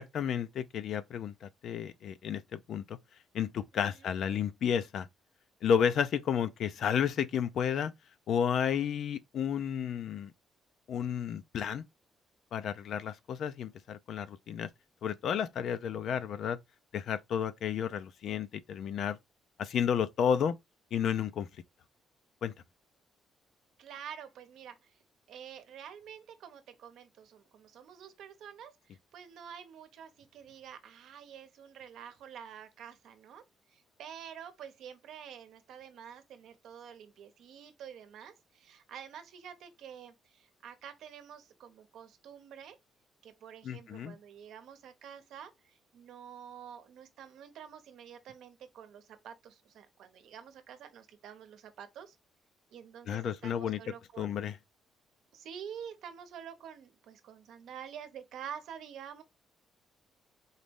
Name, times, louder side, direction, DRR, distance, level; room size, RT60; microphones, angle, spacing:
voice 1, 0.0-3.0 3.3-5.1 5.6-7.9 8.3-10.3 10.9-11.8 12.5-14.7 15.0-16.6 16.9-19.2 19.6-20.6 20.9-21.5 22.4-22.5 43.6-44.2 53.1-53.8 54.2-54.5, left 8 dB, 60° left, 0.4 m, -32 dB
voice 2, 3.7-4.1 23.8-25.0 25.3-33.4 33.7-42.8 43.2-52.2 52.7-54.3 55.3-59.2, right 8 dB, 75° right, 0.8 m, -48 dB
4.0 x 3.0 x 3.5 m
cardioid pair, 145°, 0 cm